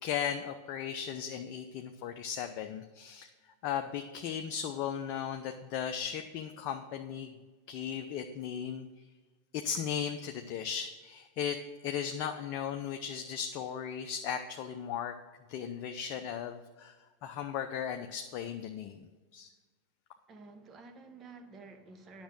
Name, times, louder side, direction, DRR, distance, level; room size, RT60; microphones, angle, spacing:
voice 1, 0.0-3.3 3.6-7.3 7.7-8.9 9.5-11.6 11.8-15.1 15.5-17.0 17.2-19.5, left 8 dB, 40° left, 5 dB, 0.6 m, -36 dB
voice 2, 20.3-22.2, right 3 dB, 25° right, 6 dB, 1.1 m, -51 dB
10.0 x 6.3 x 6.1 m, 1.3 s
figure-of-eight pair, 90°, 0 cm